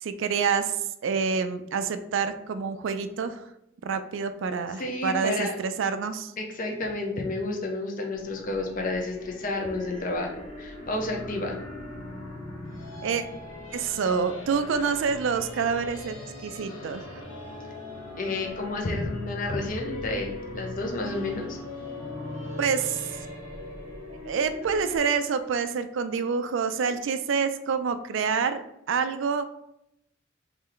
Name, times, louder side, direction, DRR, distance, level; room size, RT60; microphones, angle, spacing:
voice 1, 0.0-0.8 1.0-3.4 3.8-6.3 13.0-13.2 13.7-16.2 16.4-17.2 22.6-23.3 24.1-29.5, right 6 dB, 60° right, 10 dB, 0.3 m, -27 dB
voice 2, 4.8-5.6 6.4-11.6 18.2-21.6, left 2 dB, 40° left, 1 dB, 0.6 m, -31 dB
sound 1, 8.1-25.0, left 1 dB, 70° left, 1.0 m, -40 dB
3.2 x 3.1 x 3.8 m, 0.82 s
head